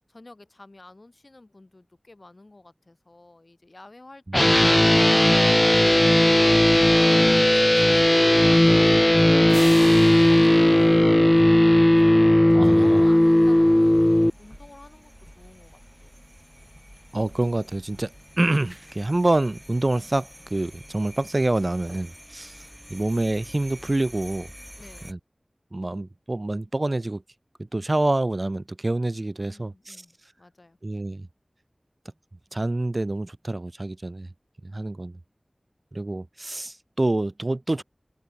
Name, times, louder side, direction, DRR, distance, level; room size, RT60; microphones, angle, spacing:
voice 1, 0.1-6.4 6.9-16.2 24.8-25.2 29.4-30.8, left 2 dB, 55° left, 5.3 m, -49 dB
sound 1, 4.3-14.3, left 1 dB, 20° left, 0.6 m, -17 dB
sound 2, 9.5-12.2, right 2 dB, 75° right, 4.4 m, -40 dB
voice 2, 12.5-13.0 17.1-22.6 22.9-24.5 25.1-25.2 25.7-27.2 27.7-30.0 30.8-31.3 32.5-34.3 34.7-35.1 35.9-37.8, right 2 dB, 45° right, 0.6 m, -26 dB
sound 3, 12.6-25.1, equal, 5° right, 6.3 m, -47 dB
wide cardioid pair, 45°, 0 cm